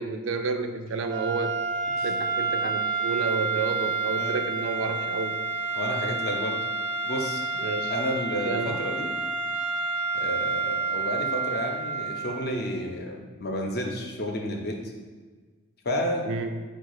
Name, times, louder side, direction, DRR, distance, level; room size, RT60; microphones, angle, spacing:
voice 1, 0.0-1.5 2.0-5.4 7.6-7.9 8.5-8.8 16.2-16.5, right 4 dB, 65° right, 7 dB, 0.4 m, -30 dB
sound 1, 1.0-12.6, right 4 dB, 5° left, 0.6 m, -29 dB
voice 2, 5.7-6.6 7.0-7.4 7.9-9.1 10.1-14.8 15.8-16.3, equal, 45° left, 2 dB, 0.6 m, -31 dB
4.6 x 2.3 x 4.7 m, 1.4 s
head